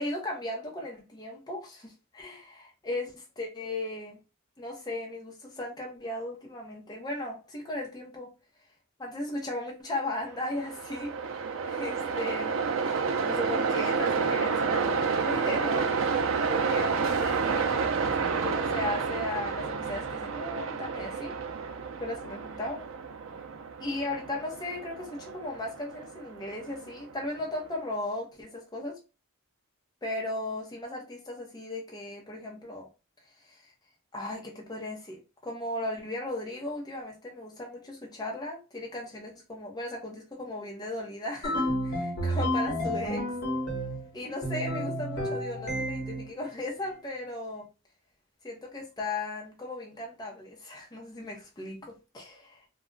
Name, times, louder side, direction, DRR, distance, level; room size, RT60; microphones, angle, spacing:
voice 1, 0.0-4.2 4.6-8.3 9.0-11.2 11.6-12.5 12.9-15.9 16.5-21.3 22.0-22.8 23.8-29.0 30.0-32.9 33.4-33.7 34.1-43.2 44.1-47.7 48.4-52.4, left 2 dB, 20° left, 0.6 m, -36 dB
Train, 10.3-27.5, right 5 dB, 65° right, 0.4 m, -30 dB
sound 1, 41.4-44.1 44.4-46.3, equal, 55° left, 1.0 m, -30 dB
2.3 x 2.0 x 3.7 m
head